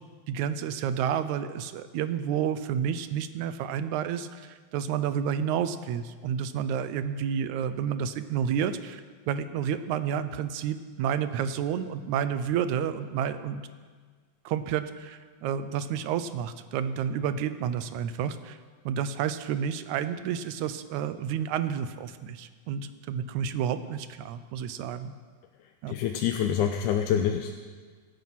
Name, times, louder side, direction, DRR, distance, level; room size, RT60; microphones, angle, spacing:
voice 1, 0.3-9.0 9.3-13.6 14.5-18.6 18.9-25.1 25.8-26.0, right 8 dB, 75° right, 11 dB, 2.1 m, -30 dB
voice 2, 25.9-27.5, left 8 dB, 90° left, 5 dB, 2.2 m, -26 dB
25.5 x 9.1 x 5.8 m, 1.5 s
omnidirectional pair, 3.5 m